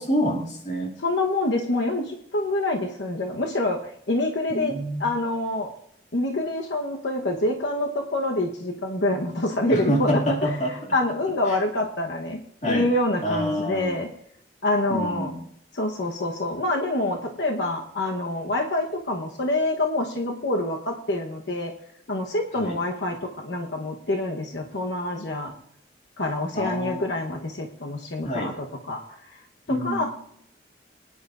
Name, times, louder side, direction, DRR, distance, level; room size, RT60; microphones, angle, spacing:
voice 1, 0.0-0.9 4.5-5.1 9.7-10.9 11.5-11.6 12.6-12.9 13.2-14.0 14.9-15.5 22.6-22.8 26.5-27.0 28.2-28.5 29.7-30.1, equal, 40° left, 1 dB, 2.3 m, -27 dB
voice 2, 1.0-3.8 4.1-4.7 5.0-5.7 6.1-10.5 10.9-12.4 12.7-14.1 14.6-15.3 15.7-21.7 22.1-25.5 26.2-28.5 28.9-29.2 29.7-30.1, left 2 dB, 80° left, 2 dB, 1.1 m, -26 dB
23.0 x 10.0 x 2.5 m, 0.71 s
head